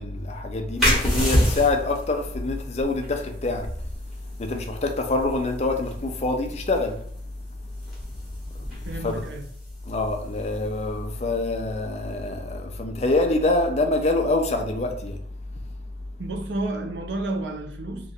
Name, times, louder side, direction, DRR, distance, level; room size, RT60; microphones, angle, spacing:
voice 1, 0.0-3.7 4.4-7.0 8.5-9.2 9.9-15.2, left 2 dB, 35° left, 0.5 m, -25 dB
sound 1, 0.8-12.1, equal, ahead, 1.2 m, -30 dB
voice 2, 8.8-9.5 16.2-18.1, right 2 dB, 80° right, 0.6 m, -31 dB
3.0 x 2.4 x 4.2 m
head